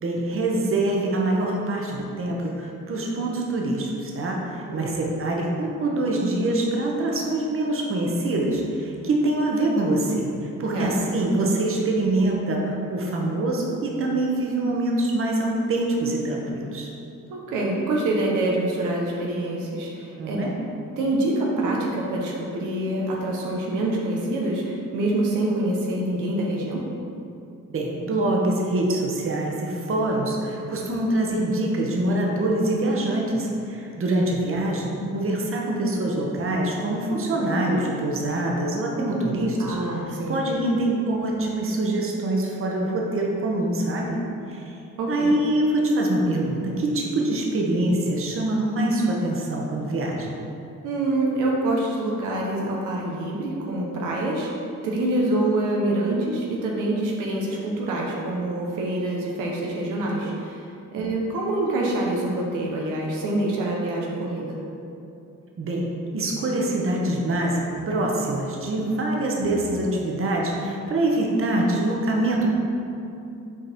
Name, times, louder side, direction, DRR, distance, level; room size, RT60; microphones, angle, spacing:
voice 1, 0.0-16.9 20.2-20.5 27.7-39.8 40.1-44.2 44.5-44.8 45.1-50.3 60.9-61.0 65.6-65.9 66.1-72.5, right 1 dB, 45° right, -1 dB, 1.2 m, -24 dB
voice 2, 17.3-20.4 21.0-26.8 39.6-40.4 45.0-45.3 50.8-54.5 54.8-64.6, right 1 dB, 90° right, -2 dB, 1.0 m, -26 dB
6.4 x 4.1 x 4.3 m, 2.7 s
cardioid pair, 90°, 30 cm